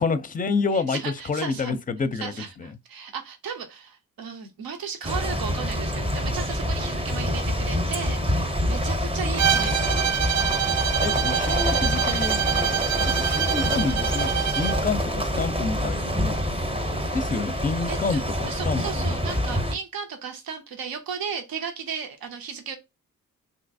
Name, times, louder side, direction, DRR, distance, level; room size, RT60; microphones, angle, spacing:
voice 1, 0.0-1.0 1.3-2.3 11.0-14.3 14.5-16.6 16.9-19.0, left 4 dB, 25° left, 0.5 m, -28 dB
voice 2, 0.7-1.7 2.1-10.6 17.9-22.8, right 6 dB, 85° right, 0.8 m, -35 dB
sound 1, 5.0-19.8, equal, 15° right, 0.7 m, -26 dB
Bowed string instrument, 9.4-14.8, right 9 dB, 50° right, 0.5 m, -25 dB
3.2 x 2.8 x 2.6 m
cardioid pair, 70°, 34 cm